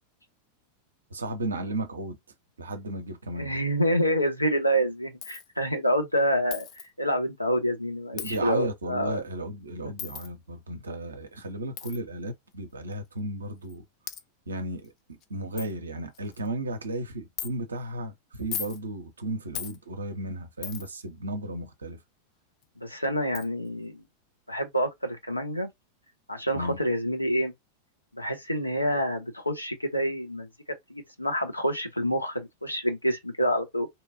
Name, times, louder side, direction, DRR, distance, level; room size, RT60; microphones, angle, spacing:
voice 1, 1.1-2.2 2.6-3.6 8.1-13.8 14.5-22.0 26.5-26.8, right 1 dB, 75° right, 0.5 m, -34 dB
voice 2, 3.4-6.7 7.0-9.2 22.8-24.0 24.5-25.7 26.3-27.5 28.1-30.5 30.9-33.9, equal, 85° left, 0.5 m, -27 dB
Coin (dropping), 5.2-5.5 6.5-6.9 8.2-8.4 10.0-10.3 11.8-12.0 12.9-13.0 13.7-13.8 14.1-14.2 14.8-14.9 15.2-15.3 15.6-15.7 16.1-16.5 17.4-17.5 18.3-18.8 19.5-19.8 20.6-21.0 22.6-22.7 23.3-23.5, left 9 dB, 35° left, 0.3 m, -37 dB
2.7 x 2.2 x 2.5 m
figure-of-eight pair, 90°, 0 cm